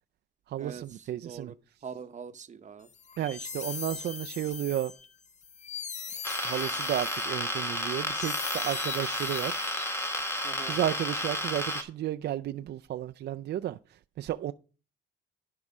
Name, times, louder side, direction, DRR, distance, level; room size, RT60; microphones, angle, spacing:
voice 1, 0.5-1.5 3.2-4.9 6.4-9.7 10.6-13.8 14.2-14.5, right 12 dB, 60° right, 0.4 m, -33 dB
voice 2, 1.2-1.5 1.8-2.9 10.4-10.8, right 6 dB, 35° right, 0.8 m, -42 dB
sound 1, 2.9-10.2, left 6 dB, 35° left, 0.7 m, -41 dB
sound 2, 6.2-11.8, left 1 dB, 15° left, 1.5 m, -32 dB
11.0 x 4.8 x 5.4 m
cardioid pair, 90°, 20 cm